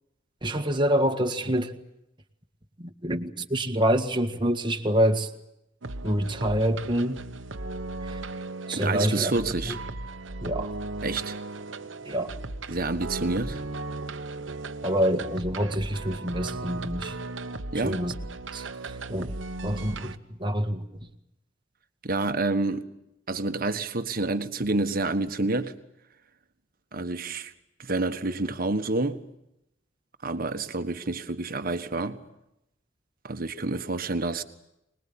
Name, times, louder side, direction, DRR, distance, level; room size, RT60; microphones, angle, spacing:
voice 1, 0.4-1.7 2.8-5.3 6.0-7.2 8.0-8.2 8.7-9.3 9.6-9.8 10.4-10.7 12.1-12.4 14.8-17.1 17.8-18.1 18.5-18.7 19.1-19.3 19.6-20.8, equal, 25° right, 1.7 m, -26 dB
sound 1, 5.8-20.2, right 2 dB, 70° right, 1.2 m, -36 dB
voice 2, 8.8-9.8 11.0-11.4 12.7-13.6 17.7-18.1 22.0-22.9 23.3-25.7 26.9-27.5 27.8-29.2 30.2-32.2 33.2-34.4, right 2 dB, 50° right, 1.5 m, -28 dB
25.0 x 20.5 x 8.7 m
head